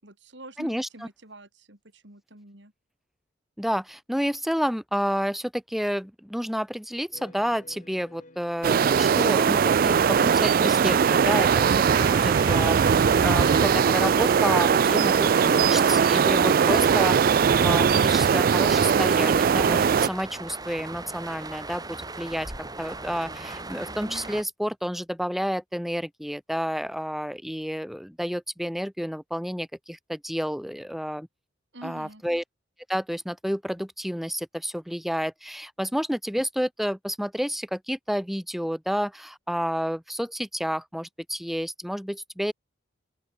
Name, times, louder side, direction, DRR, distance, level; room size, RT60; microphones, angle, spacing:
voice 1, 0.0-2.7 31.7-32.2, right 1 dB, 65° right, 5.1 m, -46 dB
voice 2, 0.6-0.9 3.6-12.8 13.2-22.5 22.8-31.3 31.8-32.4 32.9-42.5, equal, ahead, 2.7 m, -30 dB
sound 1, 7.1-13.8, left 1 dB, 40° left, 7.1 m, -55 dB
sound 2, 8.6-20.1, right 7 dB, 50° right, 0.3 m, -20 dB
sound 3, 11.9-24.4, right 3 dB, 20° right, 4.7 m, -38 dB
open air
head